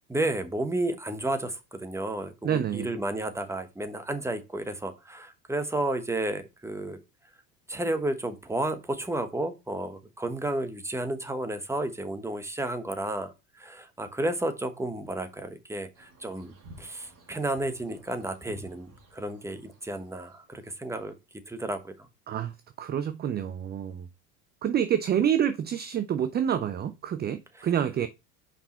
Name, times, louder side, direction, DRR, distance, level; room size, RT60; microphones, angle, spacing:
voice 1, 0.1-7.0 7.7-21.1 21.5-22.1 27.6-27.7, right 1 dB, 5° right, 1.1 m, -32 dB
voice 2, 2.4-2.9 22.3-22.5 22.8-24.1 24.6-28.1, right 9 dB, 20° right, 0.5 m, -27 dB
sound 1, 15.9-21.0, right 1 dB, 45° right, 2.5 m, -54 dB
5.4 x 5.0 x 4.2 m
hypercardioid pair, 75°, 47 cm